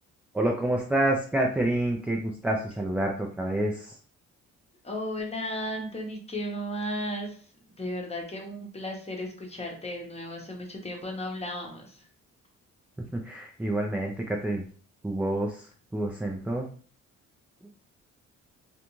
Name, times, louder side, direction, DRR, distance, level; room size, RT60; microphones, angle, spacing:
voice 1, 0.3-4.0 13.1-14.7 15.0-16.7, right 1 dB, 5° right, 0 dB, 0.3 m, -28 dB
voice 2, 4.8-12.1, equal, 20° left, 1 dB, 0.8 m, -35 dB
2.5 x 2.2 x 2.9 m, 0.44 s
cardioid pair, 90°, 30 cm